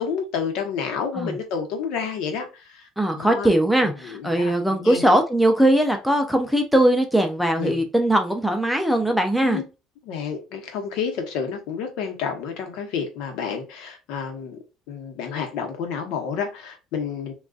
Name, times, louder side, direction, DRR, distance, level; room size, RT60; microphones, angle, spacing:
voice 1, 0.0-2.8 3.2-3.5 4.0-4.5 4.8-5.0 7.6-7.8 9.4-9.6 10.0-14.6 14.9-17.3, left 6 dB, 70° left, 0.9 m, -29 dB
voice 2, 3.0-9.6, right 1 dB, ahead, 0.4 m, -20 dB
3.7 x 2.3 x 2.3 m
cardioid pair, 160°, 0 cm